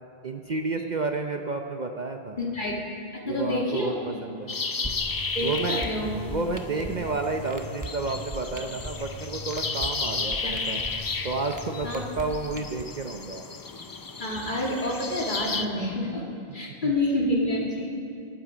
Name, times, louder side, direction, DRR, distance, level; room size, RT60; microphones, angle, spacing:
voice 1, 0.2-2.4 3.2-4.6 5.4-5.9 6.2-10.8 11.2-13.4 16.8-16.9, right 3 dB, 45° right, 4 dB, 0.7 m, -31 dB
voice 2, 2.4-2.9 3.1-4.2 5.3-6.2 6.7-6.9 10.4-10.6 11.8-12.0 14.2-16.2 16.5-17.9, left 1 dB, 45° left, -3 dB, 2.6 m, -28 dB
sound 1, 4.5-15.7, left 4 dB, 30° left, 0.4 m, -34 dB
sound 2, 4.8-12.8, equal, 20° right, 0.8 m, -39 dB
24.5 x 8.8 x 5.0 m, 2.4 s
omnidirectional pair, 1.1 m